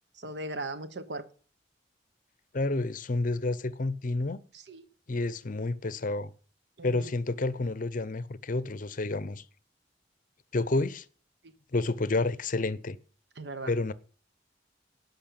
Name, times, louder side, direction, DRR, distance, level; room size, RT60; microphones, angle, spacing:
voice 1, 0.2-1.2 4.5-4.8 6.8-7.1 13.4-13.7, right 2 dB, 70° right, 1.2 m, -38 dB
voice 2, 2.5-4.4 5.1-6.3 6.8-9.4 10.5-11.0 11.7-13.0 13.7-13.9, left 2 dB, 45° left, 0.7 m, -29 dB
11.5 x 5.8 x 8.7 m
head